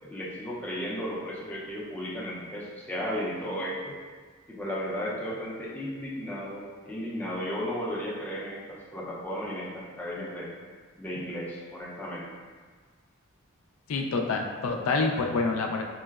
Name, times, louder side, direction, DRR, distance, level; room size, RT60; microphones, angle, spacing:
voice 1, 0.0-3.9 4.5-10.5 11.0-12.3, equal, 10° left, -6 dB, 0.4 m, -34 dB
voice 2, 13.9-15.8, left 3 dB, 90° left, 1 dB, 0.4 m, -27 dB
4.5 x 2.0 x 2.3 m, 1.5 s
head